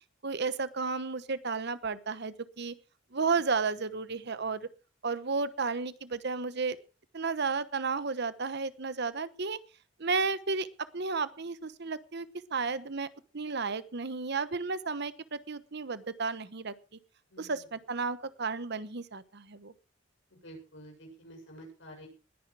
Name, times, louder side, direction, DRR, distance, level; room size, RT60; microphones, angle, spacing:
voice 1, 0.2-2.7 3.1-4.7 5.0-6.8 7.1-9.6 10.0-10.7 10.9-13.1 13.3-16.7 17.4-19.7, right 4 dB, 60° right, 14 dB, 1.1 m, -33 dB
voice 2, 17.3-17.6 20.3-22.1, right 1 dB, 70° left, 2 dB, 7.4 m, -49 dB
20.0 x 10.5 x 4.8 m, 0.35 s
head